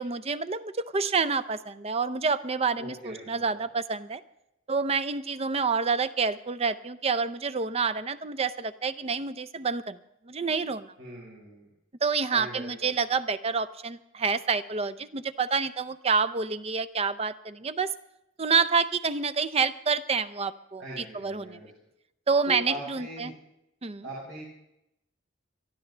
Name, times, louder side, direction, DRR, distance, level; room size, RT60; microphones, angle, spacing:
voice 1, 0.0-4.2 4.7-10.0 10.3-10.9 12.0-17.9 18.4-21.6 22.3-23.3 23.8-24.0, right 5 dB, 35° right, 15 dB, 0.5 m, -28 dB
voice 2, 2.8-3.4 11.0-11.7 12.3-12.9 20.8-21.7 22.4-23.3 24.0-24.4, equal, 80° right, -6 dB, 4.8 m, -40 dB
23.0 x 13.5 x 3.3 m, 0.84 s
head